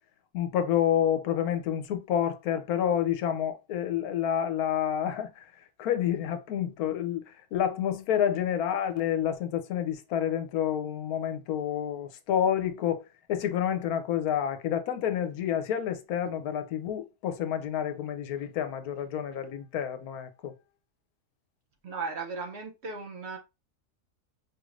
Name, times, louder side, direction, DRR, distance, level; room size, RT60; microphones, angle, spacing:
voice 1, 0.3-5.5 5.8-13.0 13.3-20.5, left 9 dB, 75° left, 1.1 m, -29 dB
voice 2, 21.8-23.4, right 4 dB, 55° right, 0.8 m, -36 dB
4.9 x 2.5 x 3.1 m
omnidirectional pair, 1.6 m